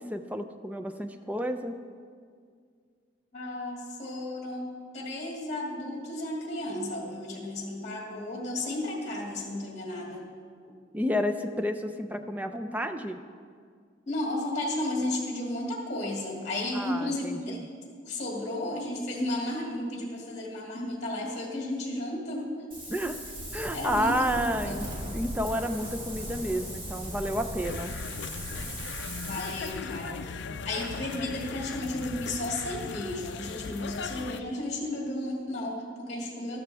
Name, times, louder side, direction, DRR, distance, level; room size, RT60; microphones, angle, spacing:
voice 1, 0.0-1.8 10.9-13.2 16.7-17.6 22.9-23.2 23.5-24.8 25.1-28.0, equal, 10° right, 7 dB, 0.5 m, -30 dB
voice 2, 3.3-10.2 14.1-22.5 23.7-24.8 29.3-30.3 30.6-36.6, left 1 dB, 35° left, -2 dB, 2.2 m, -33 dB
Wind, 22.7-29.7, equal, 30° right, 2.2 m, -38 dB
sound 1, 27.6-34.4, left 5 dB, 70° left, 0.4 m, -38 dB
13.0 x 12.5 x 3.4 m, 2.1 s
head